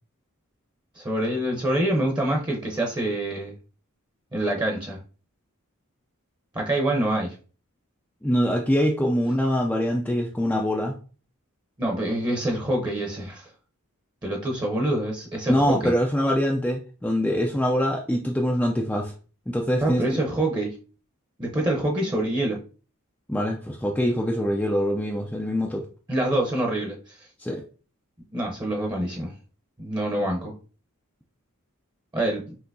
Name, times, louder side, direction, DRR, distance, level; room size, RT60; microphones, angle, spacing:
voice 1, 1.0-3.5 4.3-5.0 6.5-7.3 11.8-13.5 14.2-15.9 19.8-20.7 21.4-22.6 26.1-27.1 28.3-29.3 29.8-30.5 32.1-32.5, right 1 dB, 20° right, 0 dB, 0.8 m, -26 dB
voice 2, 8.2-10.9 15.5-19.1 19.5-20.2 23.3-25.8 27.4-27.6, equal, 5° left, 0 dB, 0.4 m, -24 dB
5.8 x 2.8 x 2.7 m, 0.37 s
head